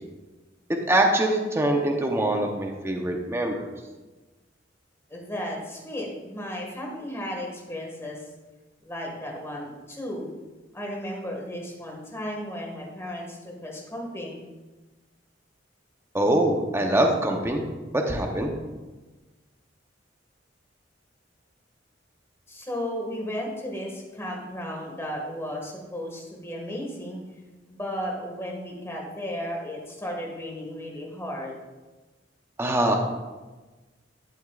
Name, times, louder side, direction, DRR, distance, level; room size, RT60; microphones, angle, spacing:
voice 1, 0.9-3.7 16.1-17.6 17.9-18.5 32.6-32.9, right 1 dB, 15° right, 2 dB, 0.8 m, -23 dB
voice 2, 5.1-8.2 8.8-10.3 10.7-14.5 22.5-27.2 27.7-31.5, equal, 15° left, -1 dB, 1.8 m, -34 dB
12.0 x 7.9 x 2.5 m, 1.2 s
head